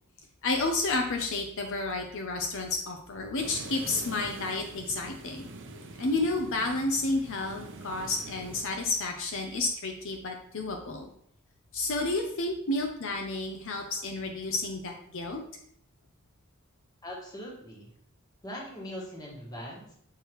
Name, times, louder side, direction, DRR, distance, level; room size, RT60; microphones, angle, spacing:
voice 1, 0.4-5.5 6.0-11.1 11.7-15.4, left 2 dB, 60° left, 3 dB, 0.6 m, -31 dB
sound 1, 3.4-8.6, right 2 dB, 55° right, 0.7 m, -45 dB
voice 2, 17.0-17.9 18.4-20.0, equal, 15° left, -3 dB, 1.5 m, -41 dB
6.6 x 4.8 x 3.1 m, 0.66 s
head